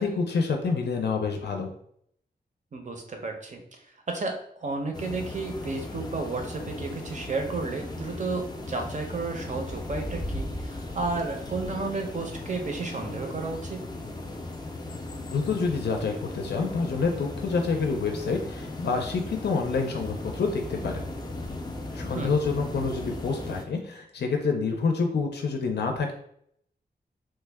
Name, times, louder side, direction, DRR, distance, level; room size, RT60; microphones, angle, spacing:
voice 1, 0.0-1.7 15.3-21.1 21.9-26.1, left 4 dB, 80° left, 3 dB, 0.5 m, -27 dB
voice 2, 2.7-3.8 4.1-13.9 22.1-22.3, right 3 dB, 45° right, 3 dB, 0.6 m, -32 dB
sound 1, 4.9-23.7, left 2 dB, 25° left, 0.5 m, -37 dB
3.1 x 2.2 x 3.4 m, 0.68 s
wide cardioid pair, 130°, 17 cm